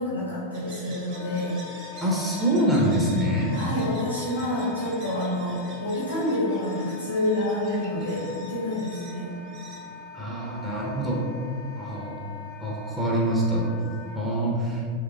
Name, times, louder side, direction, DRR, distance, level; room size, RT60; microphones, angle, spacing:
voice 1, 0.0-1.6 3.5-9.3, left 1 dB, 85° left, -8 dB, 1.2 m, -28 dB
sound 1, 0.5-10.7, right 3 dB, 40° right, 0.9 m, -48 dB
Wind instrument woodwind instrument, 1.1-14.2, left 7 dB, 55° left, 0.5 m, -42 dB
voice 2, 2.0-3.6 10.1-11.3 11.8-12.2 12.6-13.7 14.1-14.8, right 1 dB, 10° right, -4 dB, 0.7 m, -25 dB
3.6 x 3.2 x 3.6 m, 2.2 s
figure-of-eight pair, 90°, 0 cm